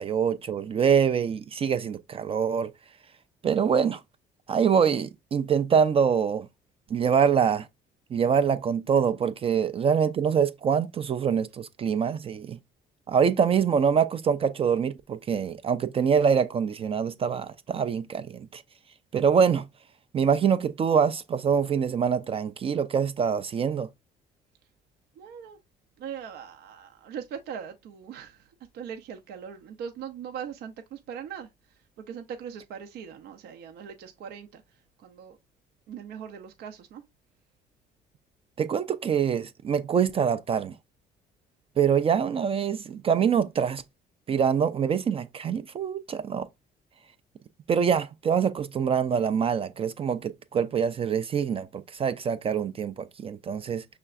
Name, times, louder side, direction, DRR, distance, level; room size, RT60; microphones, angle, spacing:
voice 1, 0.0-2.7 3.4-4.0 4.5-6.5 6.9-7.7 8.1-12.6 13.1-18.6 19.1-19.7 20.1-23.9 38.6-40.8 41.8-43.8 44.3-46.5 47.7-53.8, right 7 dB, 35° right, 0.4 m, -25 dB
voice 2, 25.2-25.6 26.0-28.5 28.7-31.5 32.0-34.6 35.0-35.4 35.9-37.0, right 8 dB, 75° right, 0.6 m, -40 dB
5.7 x 3.3 x 2.4 m
cardioid pair, 110°, 17 cm